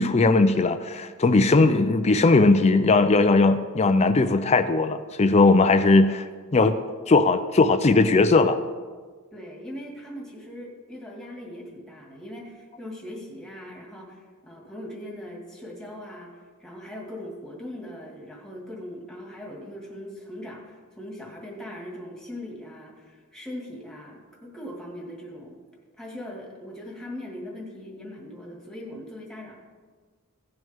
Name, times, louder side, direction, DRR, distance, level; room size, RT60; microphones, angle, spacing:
voice 1, 0.0-6.3 6.5-6.7 7.1-8.6, left 3 dB, 30° left, 10 dB, 0.4 m, -19 dB
voice 2, 9.3-25.6 26.0-29.6, left 1 dB, 5° left, -2 dB, 1.9 m, -40 dB
16.5 x 6.3 x 3.5 m, 1.5 s
head